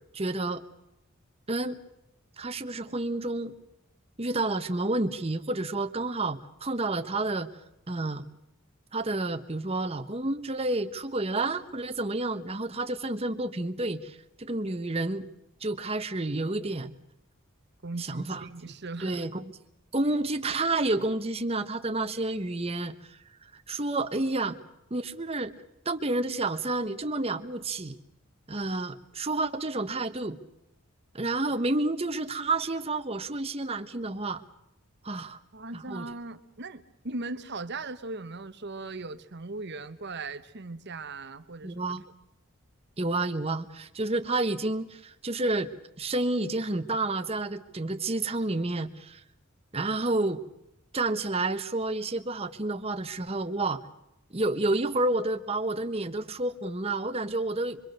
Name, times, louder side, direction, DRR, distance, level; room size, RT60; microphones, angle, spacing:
voice 1, 0.1-0.6 1.5-1.8 2.4-3.5 4.2-7.5 7.9-8.2 8.9-15.3 15.6-16.9 18.0-18.5 19.0-19.5 19.9-23.2 23.5-24.6 24.9-25.5 25.8-28.0 28.5-30.4 31.1-34.4 35.0-35.4 35.7-36.1 41.6-42.0 43.0-45.7 46.0-49.2 49.7-50.4 50.9-53.8 54.3-57.8, right 2 dB, 30° right, 8 dB, 1.1 m, -30 dB
voice 2, 17.8-19.3 35.5-41.7, right 3 dB, 55° right, 9 dB, 1.2 m, -38 dB
25.0 x 24.5 x 6.7 m, 0.84 s
head